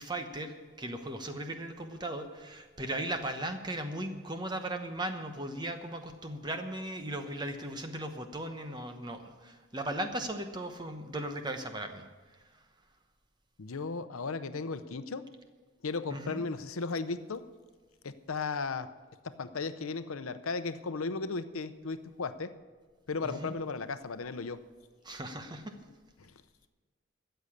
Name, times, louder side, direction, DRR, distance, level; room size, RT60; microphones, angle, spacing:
voice 1, 0.0-12.0 16.1-16.4 23.2-23.5 25.0-25.7, right 1 dB, 20° right, 6 dB, 1.0 m, -37 dB
voice 2, 13.6-15.3 15.8-17.5 18.0-18.9 19.2-22.5 23.1-24.6 26.2-26.3, left 4 dB, 85° left, 12 dB, 0.7 m, -35 dB
13.5 x 8.0 x 8.6 m, 1.4 s
head